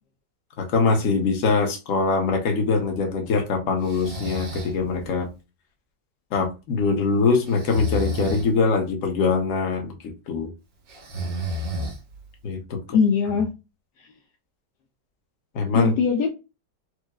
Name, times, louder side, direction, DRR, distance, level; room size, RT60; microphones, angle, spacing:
voice 1, 0.6-5.3 6.3-10.5 12.4-12.8 15.5-15.9, left 4 dB, 55° left, 1.1 m, -23 dB
Breathing, 3.8-4.8 7.5-8.5 10.9-12.3, equal, 90° right, 1.7 m, -30 dB
voice 2, 12.9-13.5 14.0-14.1 15.7-16.3, left 6 dB, 75° left, 1.1 m, -21 dB
4.5 x 2.0 x 2.3 m
omnidirectional pair, 1.9 m